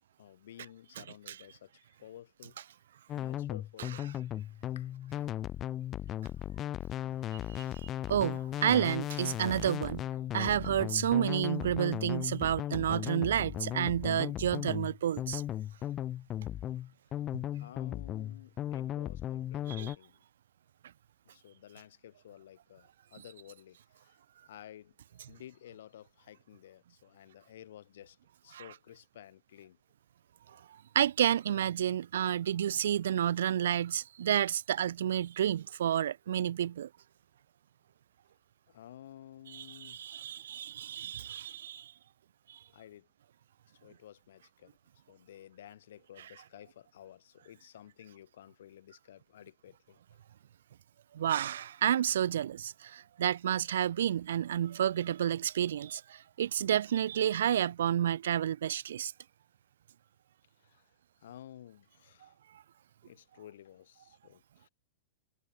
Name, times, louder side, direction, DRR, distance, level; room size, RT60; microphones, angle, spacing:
voice 1, 0.2-2.6 3.1-4.2 4.7-4.9 17.6-20.2 21.2-25.0 25.3-28.2 28.4-29.8 30.5-30.6 38.7-40.0 42.7-43.1 43.7-44.8 45.1-50.0 60.6-62.4 63.0-64.7, left 11 dB, 70° left, 6.6 m, -53 dB
sound 1, 3.1-20.0, left 12 dB, 30° left, 1.7 m, -36 dB
voice 2, 7.3-10.0 10.3-15.4 19.7-19.9 28.5-28.6 30.9-36.9 39.5-41.9 42.5-42.6 51.1-59.1, right 10 dB, 75° right, 2.7 m, -30 dB
hypercardioid pair, 110°, 0 cm